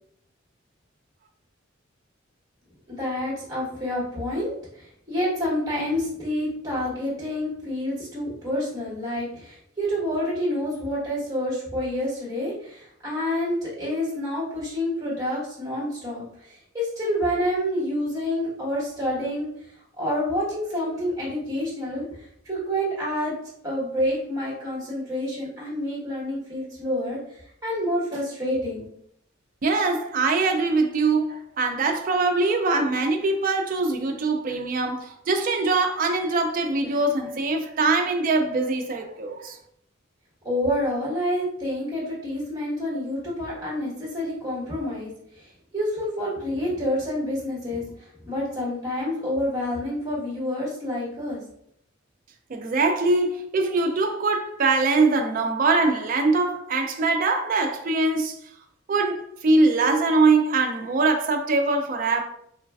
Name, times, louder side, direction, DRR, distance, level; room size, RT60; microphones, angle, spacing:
voice 1, 2.9-19.5 20.0-22.0 22.4-23.3 23.6-27.2 27.6-28.9 40.4-45.1 45.7-47.8 48.3-51.4, left 1 dB, 20° right, 1.2 m, -28 dB
voice 2, 29.6-39.6 52.5-58.4 58.9-62.2, right 3 dB, 45° right, 0.4 m, -22 dB
3.1 x 2.4 x 2.3 m
head